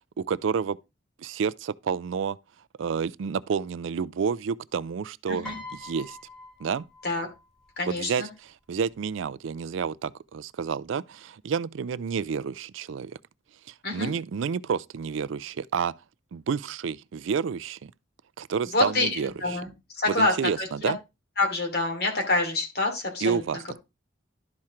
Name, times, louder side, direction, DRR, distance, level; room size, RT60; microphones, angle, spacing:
voice 1, 0.2-0.8 1.2-2.4 2.8-5.5 5.8-6.2 6.6-6.8 7.9-8.2 8.7-13.2 13.7-15.9 16.3-17.9 18.4-19.3 20.2-21.0 23.2-23.8, right 6 dB, 80° right, 0.4 m, -29 dB
Piano, 5.4-7.8 8.8-9.1, left 2 dB, 5° left, 1.4 m, -44 dB
voice 2, 7.8-8.3 13.8-14.1 18.7-20.9 21.4-23.6, left 2 dB, 50° left, 2.7 m, -27 dB
12.0 x 4.4 x 4.8 m
head